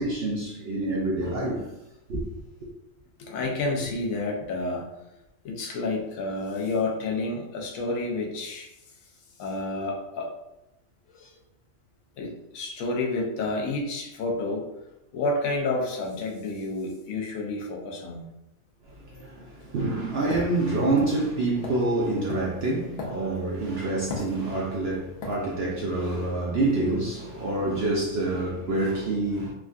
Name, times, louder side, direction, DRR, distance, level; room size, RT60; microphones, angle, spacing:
voice 1, 0.0-1.7 2.1-2.2 19.1-29.5, right 2 dB, 65° right, 0.6 m, -27 dB
voice 2, 3.2-4.9 5.4-8.7 9.4-10.3 11.1-11.3 12.2-14.7 15.1-18.3, left 2 dB, 70° left, 1.0 m, -30 dB
sound 1, 20.3-23.6 24.1-24.8 25.2-25.4, left 4 dB, 90° left, 1.2 m, -36 dB
3.5 x 2.2 x 2.4 m
omnidirectional pair, 1.5 m